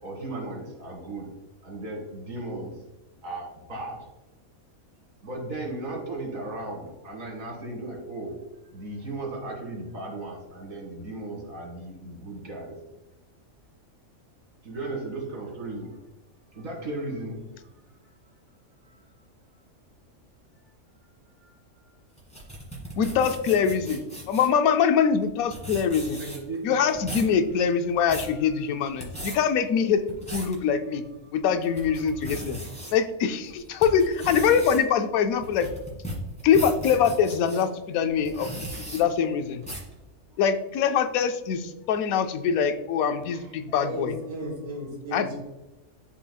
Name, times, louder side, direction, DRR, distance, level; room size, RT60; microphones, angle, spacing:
voice 1, 0.0-1.3 1.6-2.7 3.2-4.0 5.2-8.3 8.6-12.7 14.6-16.0 16.5-17.4 18.8-19.0 21.4-21.9 26.2-26.8 27.0-27.1 28.3-28.4 38.7-38.8 43.3-43.8 44.4-44.6, right 2 dB, 85° right, 0 dB, 2.4 m, -36 dB
sound 1, 22.2-24.6 25.2-25.3 25.5-26.5 26.9-27.3 27.8-28.3 28.9-29.4 29.9-30.5 31.0-31.1 31.6-32.9 33.4-37.6 38.2-39.0 39.6-39.9, right 1 dB, 5° left, 1.5 m, -37 dB
voice 2, 23.0-24.0 24.3-26.2 26.6-30.0 30.3-31.0 31.3-32.6 32.9-35.7 36.4-38.5 38.9-39.6 40.4-44.1 45.1-45.3, left 7 dB, 85° left, 8 dB, 1.0 m, -23 dB
voice 3, 43.8-45.4, right 1 dB, 50° right, -1 dB, 1.7 m, -35 dB
11.0 x 3.8 x 2.3 m, 1.0 s
omnidirectional pair, 1.4 m